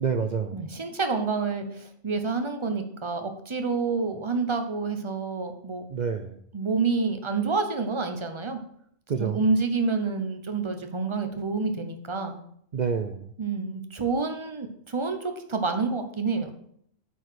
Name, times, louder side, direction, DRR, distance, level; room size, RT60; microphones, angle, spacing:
voice 1, 0.0-0.7 5.9-6.4 9.1-9.4 12.7-13.3, right 6 dB, 55° right, 7 dB, 0.5 m, -28 dB
voice 2, 0.5-5.8 6.5-8.6 9.2-12.4 13.4-16.5, right 4 dB, 25° right, 7 dB, 0.8 m, -28 dB
8.7 x 4.7 x 6.3 m, 0.68 s
omnidirectional pair, 1.3 m